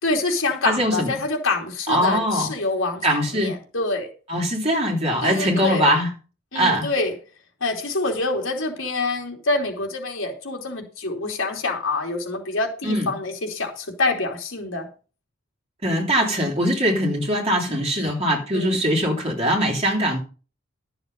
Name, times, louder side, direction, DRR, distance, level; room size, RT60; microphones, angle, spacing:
voice 1, 0.0-3.1 3.3-4.1 5.2-5.9 6.5-7.1 7.6-14.9 17.7-17.8 18.0-18.1 18.5-18.8, left 3 dB, 70° left, 2 dB, 3.2 m, -26 dB
voice 2, 0.6-1.1 1.9-2.5 3.0-3.5 4.3-6.1 6.5-6.9 12.8-13.1 15.8-20.2, equal, 30° right, 0 dB, 3.1 m, -21 dB
12.5 x 7.0 x 5.4 m, 0.36 s
head